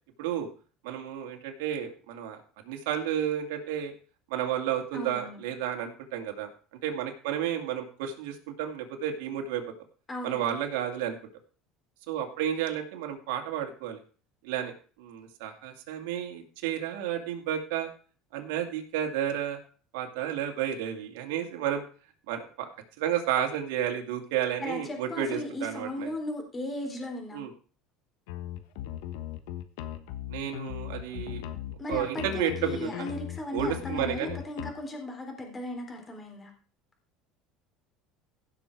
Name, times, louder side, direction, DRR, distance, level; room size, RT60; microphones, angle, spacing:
voice 1, 0.8-3.9 4.3-6.5 6.8-9.6 10.2-11.2 12.1-14.0 14.4-17.9 18.3-19.6 19.9-21.8 22.3-22.7 23.0-26.1 27.3-27.5 30.3-31.4 31.9-32.9 33.5-34.4, right 9 dB, 85° right, 3 dB, 2.4 m, -32 dB
voice 2, 4.9-5.4 10.1-10.4 24.6-27.5 31.8-36.5, left 1 dB, 20° left, 2 dB, 3.7 m, -36 dB
sound 1, 28.3-34.7, left 12 dB, 85° left, 1.2 m, -38 dB
16.5 x 6.8 x 4.7 m, 0.40 s
supercardioid pair, 120°, 0 cm